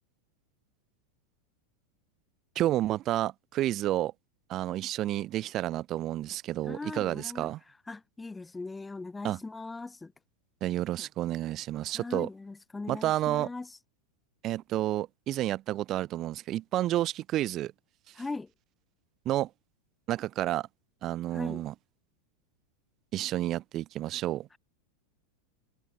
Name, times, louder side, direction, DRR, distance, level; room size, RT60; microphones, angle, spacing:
voice 1, 2.6-4.1 4.5-7.6 9.2-9.4 10.6-12.3 12.9-13.5 14.4-17.7 19.3-19.5 20.1-20.7 21.0-21.7 23.1-24.5, right 14 dB, 30° right, 5.2 m, -30 dB
voice 2, 6.7-7.5 7.9-10.1 11.9-13.8 18.1-18.5 21.3-21.6, left 3 dB, 10° left, 4.2 m, -39 dB
supercardioid pair, 155°, 0 cm